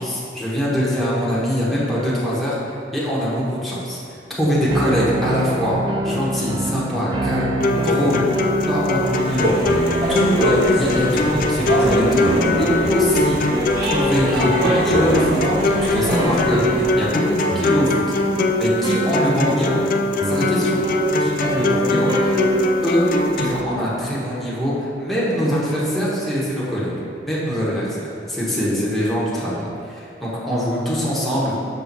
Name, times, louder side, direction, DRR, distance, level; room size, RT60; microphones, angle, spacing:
voice 1, 0.0-2.6 2.9-4.0 4.4-5.8 6.0-7.6 7.8-8.3 8.7-9.5 10.1-12.3 12.6-13.4 13.8-15.4 15.7-18.0 18.6-19.8 20.2-20.8 21.2-22.4 22.8-23.1 23.4-26.9 27.3-31.6, equal, ahead, -9 dB, 1.1 m, -23 dB
sound 1, 4.7-24.0, right 1 dB, 25° right, 0.4 m, -27 dB
sound 2, 7.6-23.6, left 2 dB, 50° left, 0.4 m, -22 dB
sound 3, 9.2-16.8, equal, 60° right, 1.2 m, -24 dB
6.0 x 3.3 x 5.3 m, 2.5 s
head